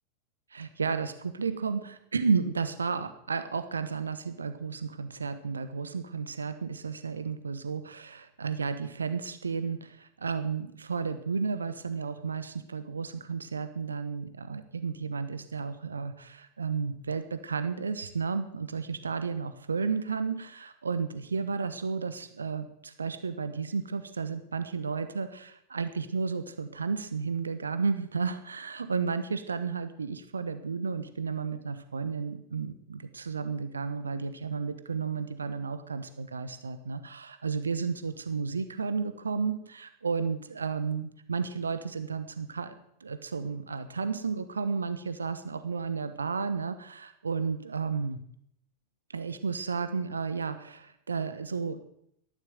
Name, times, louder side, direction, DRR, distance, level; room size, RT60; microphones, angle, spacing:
voice 1, 0.5-48.2 49.1-51.8, right 5 dB, 75° right, 11 dB, 1.1 m, -32 dB
13.0 x 11.0 x 7.9 m, 0.72 s
figure-of-eight pair, 90°, 0 cm